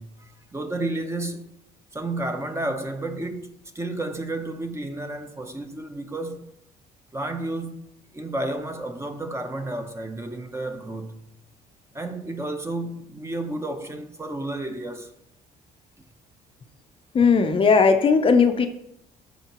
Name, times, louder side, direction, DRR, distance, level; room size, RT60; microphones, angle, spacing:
voice 1, 0.0-1.6 1.9-6.5 7.1-7.9 8.1-11.2 11.9-15.1, right 2 dB, 15° right, 0.8 m, -31 dB
voice 2, 17.1-18.7, left 5 dB, 30° left, 0.6 m, -17 dB
12.5 x 4.5 x 3.0 m
cardioid pair, 110°, 17 cm